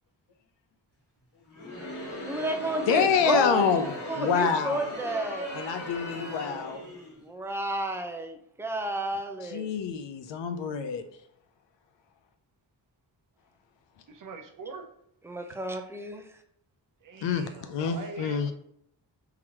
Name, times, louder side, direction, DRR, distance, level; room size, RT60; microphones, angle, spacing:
Crowd, 1.5-7.2, left 1 dB, 65° left, 1.5 m, -38 dB
voice 1, 2.3-5.5 7.2-9.7 15.2-16.3, right 1 dB, 5° right, 0.5 m, -31 dB
voice 2, 2.9-4.8 5.5-6.8 9.4-11.0 17.2-18.5, left 6 dB, 85° left, 0.6 m, -27 dB
voice 3, 14.1-14.8 17.0-18.5, right 4 dB, 50° right, 0.7 m, -43 dB
3.9 x 2.9 x 2.9 m
cardioid pair, 65°, 43 cm